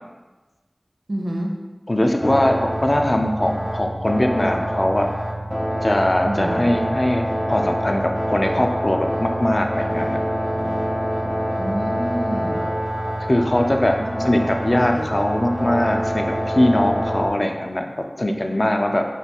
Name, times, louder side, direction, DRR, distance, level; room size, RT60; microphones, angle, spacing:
voice 1, 1.1-1.6 6.2-6.6 11.6-12.7 14.0-14.2 14.9-15.1, right 1 dB, 80° right, 0 dB, 0.5 m, -27 dB
voice 2, 1.9-5.1 5.8-10.2 13.2-14.0 14.2-19.1, left 1 dB, 50° left, 3 dB, 0.4 m, -21 dB
sound 1, 2.2-17.3, equal, 20° left, 0.7 m, -26 dB
5.6 x 2.3 x 2.9 m, 1.2 s
wide cardioid pair, 45°, 0 cm